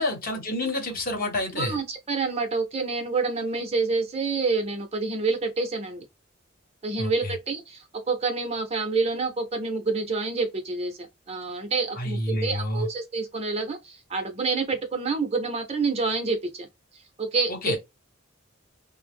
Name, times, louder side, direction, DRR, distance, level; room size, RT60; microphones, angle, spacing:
voice 1, 0.0-1.8 7.0-7.3 12.0-12.9 17.5-17.8, left 1 dB, 45° left, 1.0 m, -28 dB
voice 2, 1.5-6.0 6.8-11.0 11.3-16.7 17.2-17.8, right 4 dB, 30° right, 0.6 m, -28 dB
2.9 x 2.0 x 3.4 m
head